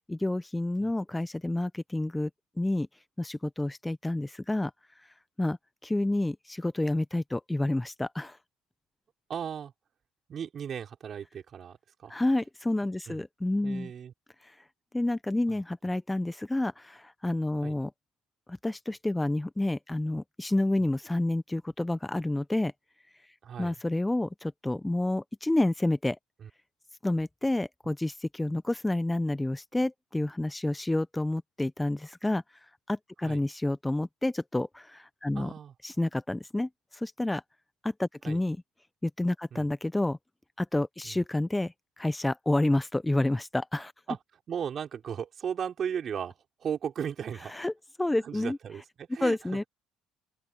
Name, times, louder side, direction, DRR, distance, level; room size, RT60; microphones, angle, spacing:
voice 1, 0.1-2.3 2.6-2.9 3.2-4.7 5.4-5.6 5.8-8.4 12.1-13.9 14.9-17.9 18.5-22.7 23.6-26.2 27.0-32.4 32.9-35.5 35.8-37.4 37.8-38.6 39.0-40.2 40.6-43.9 47.5-47.7 48.0-48.6 49.2-49.6, left 1 dB, 10° left, 0.8 m, -29 dB
voice 2, 9.3-9.7 10.3-12.1 13.1-13.2 13.6-14.1 15.5-15.6 17.6-17.8 23.4-23.8 26.4-26.5 33.2-33.4 35.3-35.7 38.2-38.4 39.5-39.7 41.0-41.2 44.1-44.2 44.5-47.5 48.2-49.7, right 8 dB, 50° right, 6.0 m, -36 dB
open air
hypercardioid pair, 65°, 0 cm